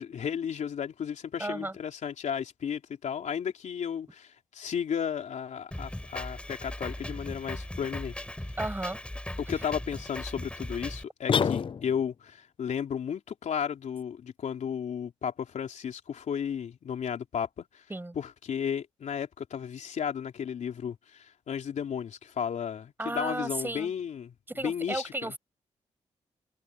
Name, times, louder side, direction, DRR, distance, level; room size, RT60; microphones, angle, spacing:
voice 1, 0.0-8.3 9.4-17.8 18.2-24.3 24.6-25.3, left 8 dB, 70° left, 3.6 m, -34 dB
voice 2, 1.4-1.8 8.6-9.0 17.9-18.2 23.0-23.9 24.5-25.4, right 2 dB, 15° right, 6.0 m, -34 dB
Drum kit, 5.7-11.0, left 1 dB, 10° left, 5.2 m, -38 dB
sound 1, 11.3-12.2, left 6 dB, 45° left, 0.5 m, -27 dB
cardioid pair, 70°, 13 cm